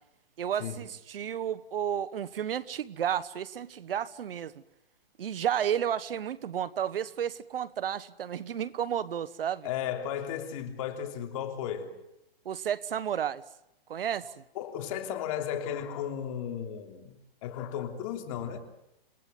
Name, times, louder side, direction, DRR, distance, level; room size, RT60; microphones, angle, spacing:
voice 1, 0.4-4.6 5.2-9.7 12.4-13.4 13.9-14.3, right 9 dB, 70° right, 1.3 m, -32 dB
voice 2, 9.6-11.9 14.5-17.2 17.4-18.6, left 9 dB, 35° left, 3.2 m, -34 dB
28.5 x 18.0 x 9.2 m
hypercardioid pair, 160°, 30 cm